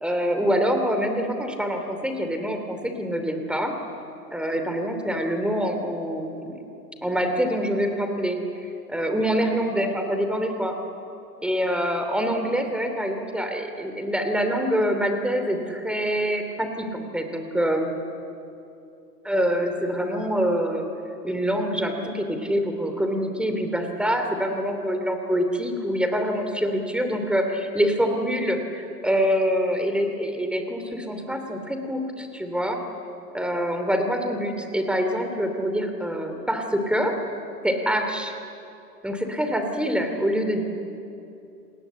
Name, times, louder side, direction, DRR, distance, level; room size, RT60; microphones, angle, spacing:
voice 1, 0.0-3.8 4.3-6.6 7.0-10.7 11.4-18.0 19.2-20.9 21.2-32.8 33.3-37.2 37.6-38.3 39.0-40.6, equal, ahead, 5 dB, 3.0 m, -25 dB
28.5 x 19.5 x 8.3 m, 2.7 s
figure-of-eight pair, 105°, 49 cm